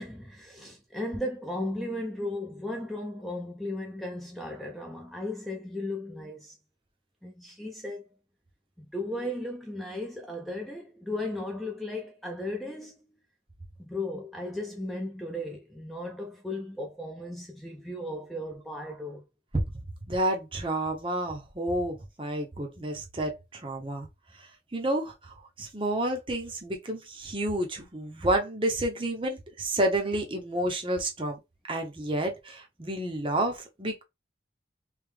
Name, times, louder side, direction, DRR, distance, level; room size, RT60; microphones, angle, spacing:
voice 1, 0.0-6.6 7.2-8.1 8.8-13.1 13.8-19.2, left 1 dB, ahead, 0.6 m, -36 dB
voice 2, 20.1-24.1 24.4-31.4 31.7-34.0, right 1 dB, 30° right, 0.8 m, -30 dB
3.4 x 2.9 x 3.3 m
head